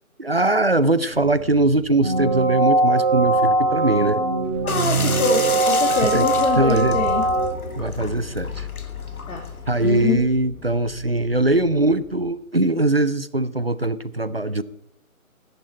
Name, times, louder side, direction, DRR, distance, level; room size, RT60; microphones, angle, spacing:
voice 1, 0.2-4.2 6.1-6.3 6.6-7.0 7.7-8.7 9.7-14.6, right 2 dB, 45° right, 16 dB, 0.5 m, -21 dB
sound 1, 1.0-12.3, left 4 dB, 5° left, 2.1 m, -37 dB
sound 2, 2.0-7.5, right 2 dB, 20° right, 3.2 m, -21 dB
voice 2, 4.6-7.3 9.3-9.4 9.8-10.2, left 4 dB, 65° left, 1 dB, 2.1 m, -24 dB
sound 3, 4.7-10.1, left 4 dB, 90° left, 1.6 m, -32 dB
13.5 x 10.5 x 4.2 m, 0.75 s
figure-of-eight pair, 175°, 42 cm